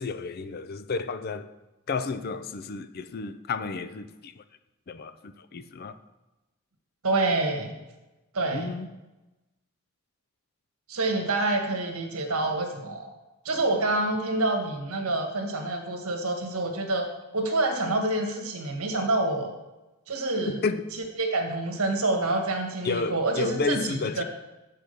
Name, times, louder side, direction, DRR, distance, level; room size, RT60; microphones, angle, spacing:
voice 1, 0.0-1.5 1.9-4.4 4.9-5.1 5.5-6.0 8.5-8.9 20.6-20.8 22.8-24.2, left 4 dB, 45° left, 0.4 m, -31 dB
voice 2, 7.0-7.7 8.3-8.7 10.9-13.1 13.4-17.1 17.3-19.5 20.1-20.6 21.2-24.2, right 2 dB, 80° right, 1.4 m, -27 dB
8.3 x 4.5 x 6.6 m
head